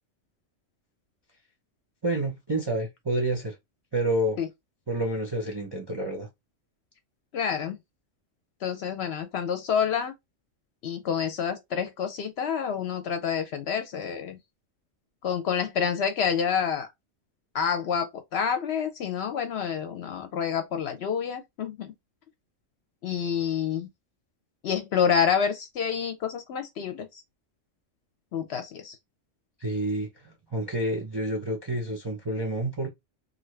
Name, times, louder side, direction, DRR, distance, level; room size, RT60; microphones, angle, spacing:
voice 1, 2.0-3.6 3.9-4.4 4.9-6.3 29.6-32.9, right 1 dB, 30° right, 0.5 m, -29 dB
voice 2, 7.3-7.8 8.6-10.1 10.8-14.4 15.2-16.9 17.5-21.9 23.0-23.9 24.6-27.2 28.3-29.0, left 7 dB, 65° left, 0.8 m, -28 dB
2.7 x 2.5 x 3.1 m
omnidirectional pair, 1.3 m